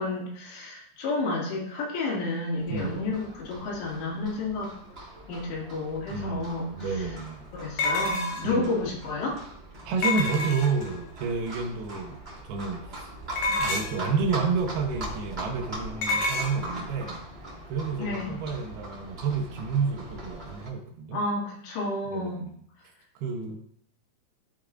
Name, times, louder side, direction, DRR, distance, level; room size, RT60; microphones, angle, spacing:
voice 1, 0.0-4.7 5.3-6.9 7.5-9.4 18.0-18.3 21.1-22.4, left 3 dB, 90° left, -4 dB, 4.6 m, -31 dB
Livestock farm animals working animals, 2.6-20.7, right 1 dB, 40° right, 0.8 m, -41 dB
voice 2, 2.7-3.1 6.1-7.4 8.4-8.9 9.9-12.2 12.4-13.1 13.5-17.2 17.7-21.2 22.1-22.6 23.2-23.6, right 5 dB, 75° right, 2 dB, 2.7 m, -30 dB
sound 1, 6.2-6.3 7.8-8.6 10.0-10.9 13.4-14.1 16.0-16.5, left 2 dB, 65° left, 2.4 m, -28 dB
13.0 x 5.3 x 2.5 m, 0.68 s
omnidirectional pair, 4.9 m